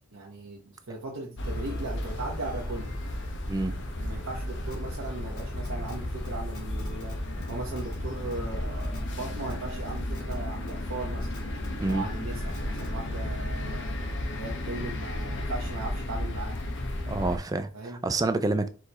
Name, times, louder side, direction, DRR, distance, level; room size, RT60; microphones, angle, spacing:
voice 1, 0.0-2.9 4.0-11.4 11.9-13.8 14.3-16.6 17.7-18.0, right 2 dB, 75° right, 0.9 m, -38 dB
sound 1, 1.4-17.4, left 1 dB, 55° left, 0.8 m, -33 dB
voice 2, 3.5-3.8 11.8-12.0 17.1-17.7 18.0-18.7, right 2 dB, 15° right, 0.3 m, -27 dB
sound 2, 4.7-4.8 5.4-6.0 6.2-6.3 6.5-7.1 7.4-8.0 8.3-8.4 8.8-9.0 9.5-9.6 10.1-10.3 10.7-10.8 11.2-11.9 12.5-12.9, left 2 dB, 90° left, 2.3 m, -46 dB
4.6 x 2.3 x 4.0 m
head